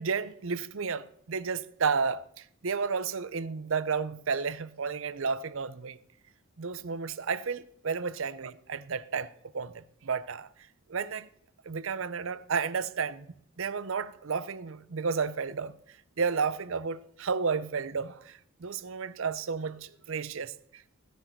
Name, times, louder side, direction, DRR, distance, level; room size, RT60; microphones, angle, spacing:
voice 1, 0.0-6.0 6.6-10.5 10.9-11.3 11.6-13.3 13.6-20.8, right 5 dB, 65° right, 0.6 m, -32 dB
16.0 x 10.0 x 4.5 m
head